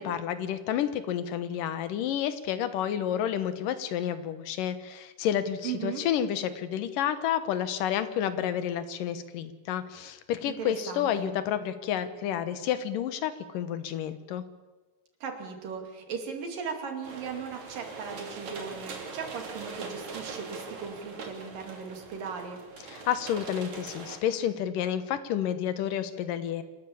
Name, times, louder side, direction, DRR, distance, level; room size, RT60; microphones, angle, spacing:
voice 1, 0.0-14.4 22.9-26.6, left 10 dB, 80° left, 12 dB, 2.8 m, -30 dB
voice 2, 5.6-6.0 10.4-11.3 15.2-22.6, right 6 dB, 90° right, 4 dB, 4.3 m, -37 dB
sound 1, 17.0-24.2, right 4 dB, 60° right, 4.0 m, -42 dB
27.0 x 13.0 x 8.6 m, 1.2 s
omnidirectional pair, 3.8 m